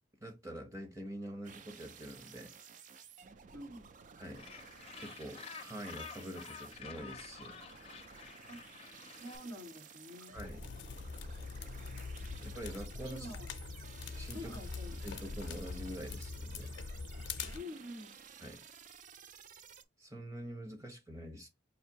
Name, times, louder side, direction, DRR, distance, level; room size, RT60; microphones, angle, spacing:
voice 1, 0.2-2.5 4.2-4.4 5.0-7.6 10.3-10.7 12.4-13.3 14.2-14.6 15.0-16.7 18.4-18.6 20.0-21.5, right 1 dB, 15° right, 0.9 m, -45 dB
sound 1, 1.4-19.8, right 7 dB, 45° right, 0.4 m, -55 dB
voice 2, 3.5-3.9 8.5-8.6 9.2-10.3 13.0-13.5 14.3-15.0 17.5-18.1, left 1 dB, 85° right, 2.0 m, -47 dB
Gull seagull, 4.4-9.4, left 6 dB, 30° left, 0.5 m, -50 dB
sound 2, 10.4-17.6, left 4 dB, 80° left, 0.5 m, -43 dB
4.9 x 2.6 x 2.8 m
head